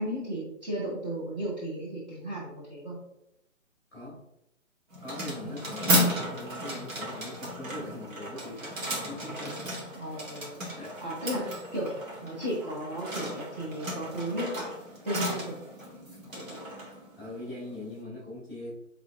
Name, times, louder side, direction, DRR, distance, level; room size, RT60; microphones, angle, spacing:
voice 1, 0.0-3.0 5.4-5.6 10.0-10.7 11.0-11.4 11.7-11.9 12.2-14.7 15.0-15.6 16.3-16.6, right 1 dB, 35° right, -7 dB, 1.5 m, -34 dB
voice 2, 3.9-4.2 5.0-9.8 10.1-11.6 17.2-18.7, left 1 dB, 5° right, -11 dB, 1.5 m, -42 dB
sound 1, 4.9-18.0, equal, 80° right, 1.6 m, -34 dB
5.7 x 3.4 x 2.4 m, 0.83 s
hypercardioid pair, 175°, 39 cm